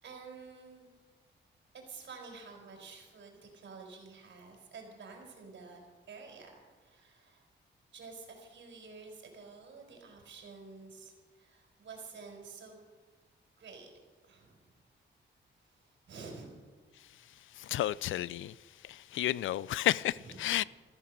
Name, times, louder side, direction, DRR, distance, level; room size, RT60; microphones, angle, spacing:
voice 1, 0.0-0.9 1.7-7.4 7.9-12.8 13.6-13.9 14.3-14.7 15.6-16.6 20.2-20.4, right 4 dB, 70° right, 4.6 m, -50 dB
voice 2, 17.5-18.6 18.8-20.6, left 13 dB, 80° left, 0.4 m, -32 dB
14.5 x 13.5 x 6.6 m
cardioid pair, 110°, 20 cm